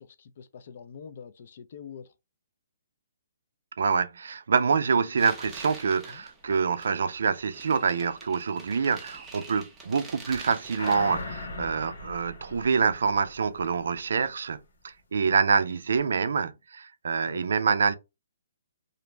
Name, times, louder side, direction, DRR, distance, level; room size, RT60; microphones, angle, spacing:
voice 1, 0.0-2.1 6.1-6.2 9.9-10.0 15.2-15.4 17.3-17.4, left 7 dB, 50° left, 0.4 m, -45 dB
voice 2, 3.8-14.6 14.8-18.0, right 5 dB, 70° right, 0.3 m, -26 dB
sound 1, 5.2-11.0, right 3 dB, 10° right, 0.5 m, -46 dB
sound 2, 10.8-13.7 14.1-14.2, left 2 dB, 70° left, 1.0 m, -38 dB
2.5 x 2.0 x 3.1 m
hypercardioid pair, 165°, 0 cm